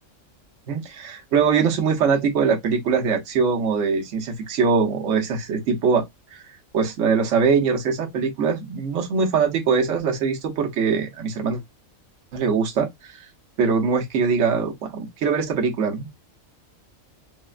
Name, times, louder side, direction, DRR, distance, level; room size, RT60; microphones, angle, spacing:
voice 1, 0.7-6.1 6.3-6.4 6.7-11.6 12.3-13.2 13.6-16.1, right 5 dB, 70° right, 1.1 m, -22 dB
4.0 x 2.1 x 2.3 m
omnidirectional pair, 1.4 m